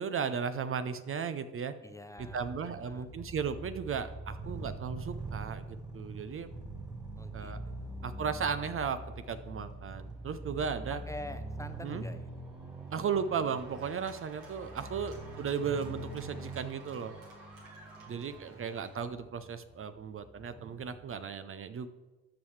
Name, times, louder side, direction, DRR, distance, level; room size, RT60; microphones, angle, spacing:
voice 1, 0.0-1.7 2.3-6.5 7.3-7.6 8.0-11.0 11.8-12.0 12.9-17.2 18.1-21.9, right 6 dB, 40° right, 11 dB, 0.6 m, -35 dB
voice 2, 1.8-3.1 7.2-8.0 11.1-12.3 14.8-15.3 17.8-18.1 18.4-18.6, left 1 dB, 10° left, 8 dB, 0.7 m, -47 dB
sound 1, 2.2-21.3, right 2 dB, 10° right, 1.8 m, -44 dB
Cheering / Applause, 9.4-19.1, right 3 dB, 80° right, 2.1 m, -56 dB
13.0 x 5.5 x 3.2 m, 1.2 s
supercardioid pair, 60°, 33 cm